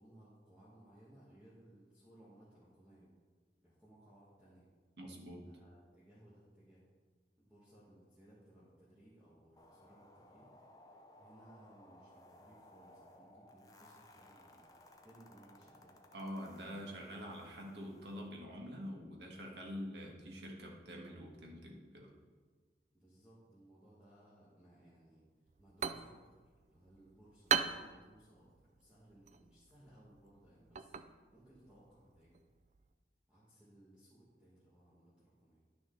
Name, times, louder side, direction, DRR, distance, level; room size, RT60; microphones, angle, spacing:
voice 1, 0.0-3.1 3.6-4.7 5.4-6.8 7.4-10.5 11.2-14.7 15.0-15.9 17.1-17.2 22.9-25.2 25.6-30.9 31.3-32.4 33.3-35.6, right 1 dB, 5° right, -10 dB, 1.6 m, -62 dB
voice 2, 5.0-5.5 16.1-22.1, equal, 70° right, 1 dB, 1.5 m, -46 dB
sound 1, 9.6-18.3, left 1 dB, 20° left, 0.6 m, -61 dB
sound 2, 25.5-32.9, right 7 dB, 40° right, 0.3 m, -41 dB
10.5 x 6.2 x 3.9 m, 1.4 s
head